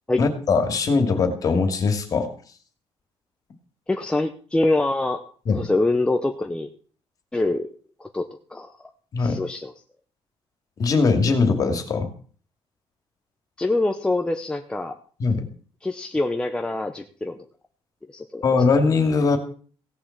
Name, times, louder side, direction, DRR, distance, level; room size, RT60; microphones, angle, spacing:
voice 1, 0.2-2.3 5.5-5.7 9.1-9.4 10.8-12.1 15.2-15.5 18.4-19.4, left 4 dB, 35° left, 5 dB, 2.5 m, -21 dB
voice 2, 3.9-5.2 5.6-6.7 7.3-7.7 8.0-8.7 9.2-9.7 13.6-14.9 15.8-17.4 18.1-18.4, left 2 dB, 10° left, 4 dB, 0.8 m, -24 dB
17.0 x 7.3 x 7.3 m, 0.43 s
cardioid pair, 175°, 10 cm